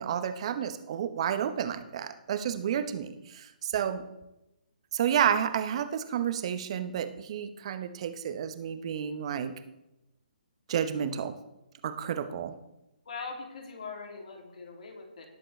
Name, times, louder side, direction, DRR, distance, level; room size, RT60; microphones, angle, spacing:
voice 1, 0.0-4.0 4.9-9.5 10.7-11.3 11.8-12.5, right 9 dB, 40° right, 10 dB, 1.0 m, -30 dB
voice 2, 13.1-15.3, left 4 dB, 55° left, 1 dB, 2.8 m, -41 dB
18.5 x 7.8 x 3.3 m, 0.91 s
figure-of-eight pair, 135°, 5 cm